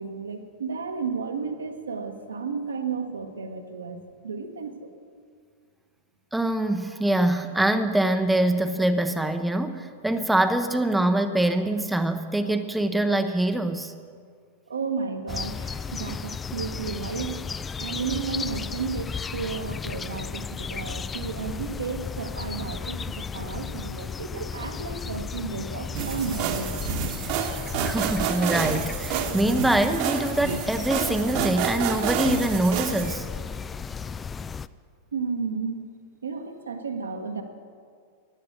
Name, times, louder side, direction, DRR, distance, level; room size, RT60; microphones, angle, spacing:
voice 1, 0.0-4.9 14.7-17.5 17.8-26.8 35.1-35.9 36.2-37.4, right 5 dB, 75° right, 5 dB, 1.4 m, -33 dB
voice 2, 6.3-13.9 27.8-33.3, right 1 dB, 5° right, 8 dB, 0.8 m, -24 dB
sound 1, 15.3-34.7, left 6 dB, 20° left, 0.4 m, -34 dB
sound 2, 25.9-33.2, right 8 dB, 45° right, 1.3 m, -29 dB
15.5 x 11.0 x 6.7 m, 2.1 s
figure-of-eight pair, 95°, 0 cm